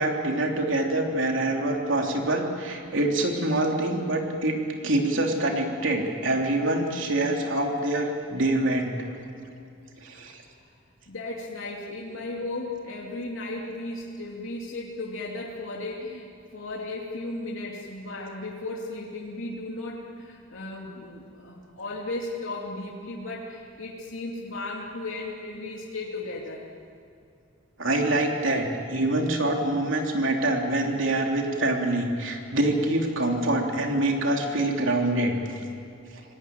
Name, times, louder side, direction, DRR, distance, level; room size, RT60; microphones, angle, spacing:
voice 1, 0.0-4.6 4.8-9.1 10.0-10.4 27.8-35.6 36.1-36.2, right 1 dB, 70° right, 2 dB, 3.2 m, -25 dB
voice 2, 11.1-26.7, left 2 dB, 80° left, -3 dB, 2.7 m, -35 dB
27.0 x 18.5 x 9.4 m, 2.5 s
head